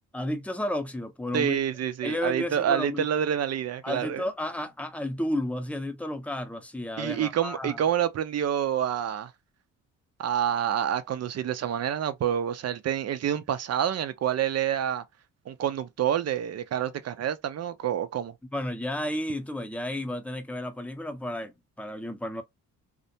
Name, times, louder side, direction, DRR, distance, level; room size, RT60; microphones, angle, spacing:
voice 1, 0.1-1.6 2.0-3.1 3.8-7.8 18.5-22.4, left 1 dB, 5° left, 0.6 m, -32 dB
voice 2, 1.3-4.2 7.0-9.3 10.2-15.0 15.5-18.3, right 9 dB, 45° right, 0.5 m, -28 dB
2.4 x 2.2 x 2.7 m
supercardioid pair, 65°, 36 cm